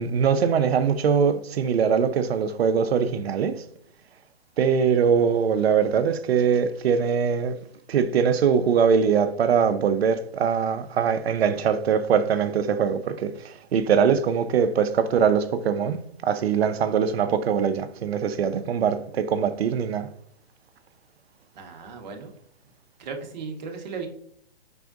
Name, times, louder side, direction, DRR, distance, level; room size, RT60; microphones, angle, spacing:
voice 1, 0.0-3.6 4.6-7.6 7.9-20.1, right 7 dB, 75° right, 0.5 m, -22 dB
voice 2, 21.5-22.3 23.0-24.1, right 5 dB, 45° right, 0.9 m, -36 dB
4.9 x 3.5 x 2.4 m
hypercardioid pair, 145°, 31 cm